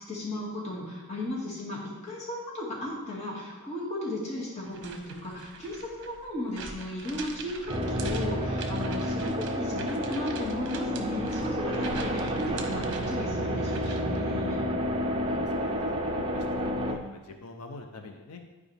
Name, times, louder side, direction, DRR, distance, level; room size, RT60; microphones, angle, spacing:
voice 1, 0.1-15.4, left 1 dB, 30° left, -6 dB, 2.2 m, -35 dB
sound 1, 4.6-14.2, right 4 dB, 55° right, 0.8 m, -43 dB
sound 2, 7.7-16.9, equal, 25° right, 0.6 m, -30 dB
voice 2, 15.2-18.4, left 3 dB, 85° left, 5 dB, 0.7 m, -45 dB
11.0 x 4.8 x 3.4 m, 1.2 s
head